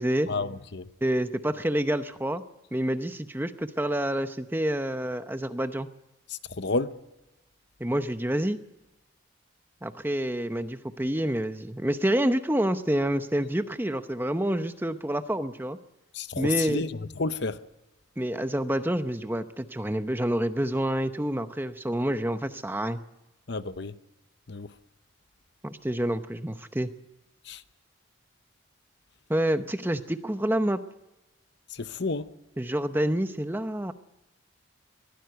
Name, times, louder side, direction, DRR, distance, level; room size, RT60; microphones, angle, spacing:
voice 1, 0.3-0.9 6.3-6.9 16.1-16.9 17.2-17.6 23.5-23.9 24.5-24.7 27.5-27.6 31.7-32.3, left 3 dB, 55° left, 0.8 m, -30 dB
voice 2, 1.0-2.4 2.7-5.9 7.8-8.6 9.8-15.8 16.4-16.9 18.2-23.0 25.6-26.9 29.3-30.8 32.6-33.9, right 1 dB, 10° right, 0.8 m, -28 dB
22.0 x 15.0 x 7.9 m
head